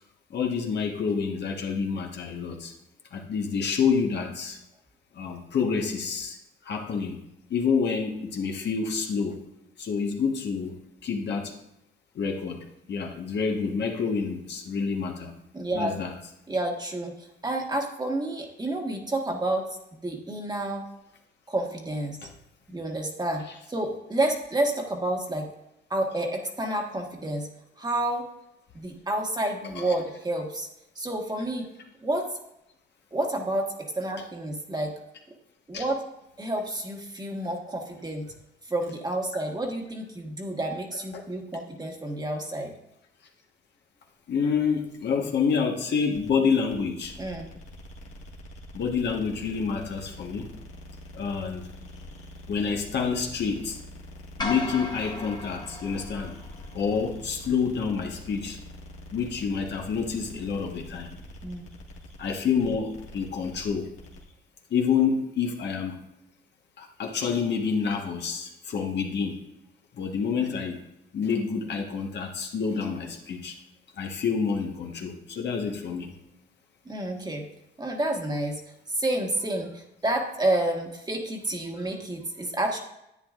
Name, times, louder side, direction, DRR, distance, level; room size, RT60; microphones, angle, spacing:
voice 1, 0.3-2.7 3.1-4.6 5.1-6.4 6.6-7.2 7.5-9.4 9.8-10.8 11.0-11.5 12.1-15.3 15.7-16.1 29.7-29.9 35.7-35.8 41.1-41.2 44.3-47.1 48.7-50.5 51.1-51.7 52.5-53.8 54.4-56.3 56.7-58.6 59.1-61.2 62.2-63.9 64.7-66.0 66.8-69.4 69.9-70.8 71.1-73.5 74.0-76.1, left 6 dB, 60° left, 1 dB, 1.4 m, -28 dB
voice 2, 15.5-16.0 16.5-19.6 19.9-20.8 21.5-22.2 22.7-23.4 23.7-25.5 25.9-27.5 27.8-28.3 28.7-30.7 30.9-31.7 32.0-32.3 33.1-34.9 35.7-36.0 36.4-38.3 38.7-42.7 47.2-47.5 61.4-61.6 76.8-77.4 77.8-82.8, right 1 dB, 20° right, 1 dB, 1.5 m, -29 dB
sound 1, 46.1-64.3, left 1 dB, 90° left, 1.8 m, -45 dB
sound 2, 54.4-56.8, left 2 dB, 20° left, 1.3 m, -36 dB
10.5 x 8.8 x 2.5 m, 0.84 s
cardioid pair, 90°, 20 cm